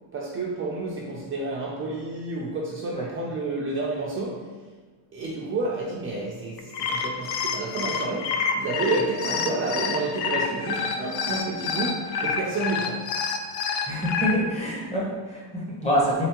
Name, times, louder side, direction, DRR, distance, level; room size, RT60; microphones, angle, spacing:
voice 1, 0.1-4.7 5.1-13.3, right 3 dB, 30° right, -4 dB, 0.4 m, -30 dB
sound 1, 6.6-14.3, left 6 dB, 60° left, 0.5 m, -28 dB
voice 2, 13.8-16.3, equal, 15° left, -4 dB, 0.8 m, -26 dB
3.6 x 3.4 x 2.8 m, 1.4 s
cardioid pair, 145°, 45 cm